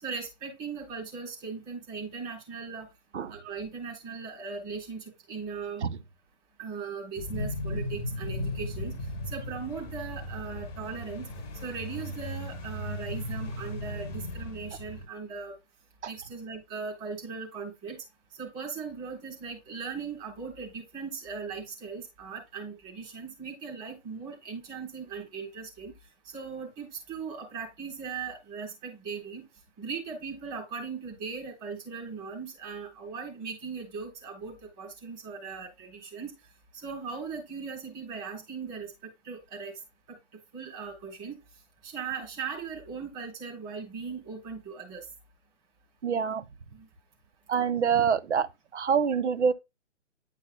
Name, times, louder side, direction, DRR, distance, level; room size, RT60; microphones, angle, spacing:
voice 1, 0.0-2.9 3.3-5.8 6.6-9.0 9.3-11.3 11.6-15.5 16.0-18.0 18.4-25.9 26.3-29.5 29.8-36.3 36.8-39.7 40.5-41.4 41.8-45.0 46.8-46.9, right 5 dB, 20° right, 3.8 m, -38 dB
sound 1, 7.2-15.1, left 1 dB, 20° left, 1.0 m, -36 dB
voice 2, 46.0-46.4 47.5-49.5, right 6 dB, 65° right, 0.8 m, -26 dB
10.5 x 5.7 x 2.2 m
figure-of-eight pair, 145°, 37 cm